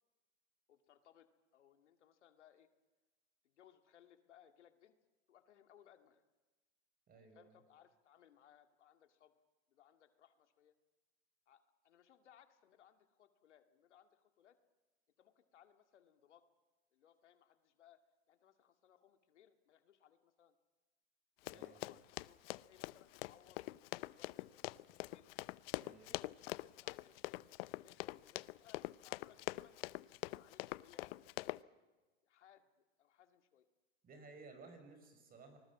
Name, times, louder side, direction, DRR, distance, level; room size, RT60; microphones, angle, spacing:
voice 1, 0.7-2.7 3.4-5.0 5.3-6.2 7.1-9.3 9.7-10.7 11.5-14.6 15.2-16.4 16.9-18.0 18.3-20.5 21.4-25.3 26.1-27.4 27.8-29.8 30.2-31.6 32.2-32.7 33.0-33.7, left 10 dB, 90° left, 8 dB, 2.2 m, -66 dB
voice 2, 7.1-7.6 21.5-22.0 25.8-26.2 34.0-35.6, right 3 dB, 25° right, 7 dB, 5.8 m, -57 dB
Run, 21.5-31.6, left 20 dB, 55° left, 0.7 m, -44 dB
25.5 x 20.5 x 7.4 m, 1.2 s
hypercardioid pair, 125°, 34 cm